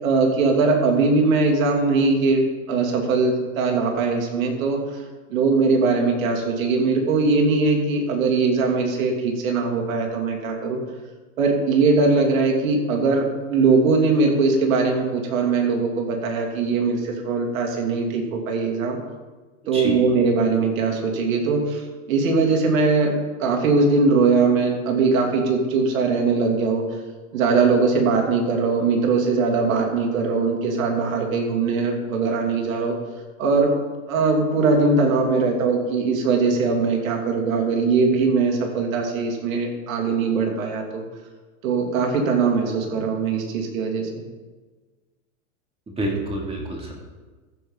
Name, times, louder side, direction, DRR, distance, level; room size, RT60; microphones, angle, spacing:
voice 1, 0.0-2.4 2.7-4.8 5.3-10.8 11.4-19.0 19.7-23.1 23.4-26.8 27.3-32.9 33.4-33.7 34.1-41.0 41.6-44.1, right 4 dB, 75° right, 1 dB, 2.8 m, -21 dB
voice 2, 46.0-46.9, right 1 dB, 15° right, -1 dB, 2.6 m, -27 dB
14.5 x 8.2 x 3.9 m, 1.3 s
supercardioid pair, 135°, 40 cm